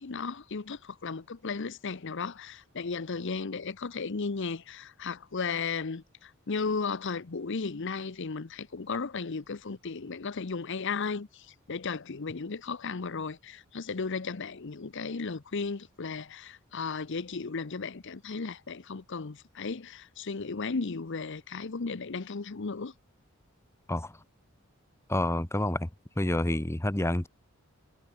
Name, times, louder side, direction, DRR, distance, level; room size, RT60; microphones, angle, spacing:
voice 1, 0.0-22.9, left 4 dB, 60° left, 0.8 m, -35 dB
voice 2, 25.1-25.9 26.2-27.3, left 1 dB, 15° left, 0.9 m, -28 dB
head